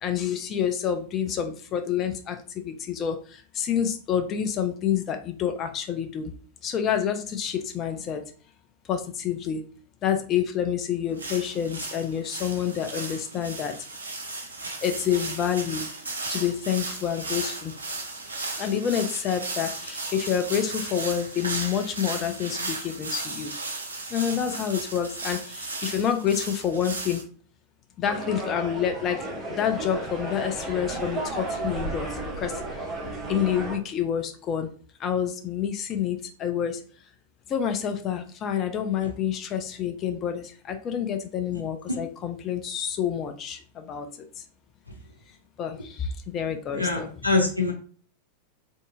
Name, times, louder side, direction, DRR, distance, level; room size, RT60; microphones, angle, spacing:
voice 1, 0.0-6.3 6.6-8.2 8.9-9.6 10.0-13.8 14.8-15.9 16.3-17.7 18.6-23.6 24.1-27.2 28.0-32.6 33.3-34.7 35.0-36.8 37.5-44.1 44.4-44.5 45.6-47.3, left 8 dB, 30° left, 6 dB, 0.3 m, -28 dB
sound 1, 11.2-27.2, right 3 dB, 75° right, 0.6 m, -35 dB
sound 2, 28.0-33.8, right 2 dB, 15° right, 0.9 m, -33 dB
voice 2, 46.7-47.7, left 3 dB, 90° left, 2 dB, 0.6 m, -24 dB
3.5 x 2.6 x 2.4 m, 0.43 s
figure-of-eight pair, 90°, 0 cm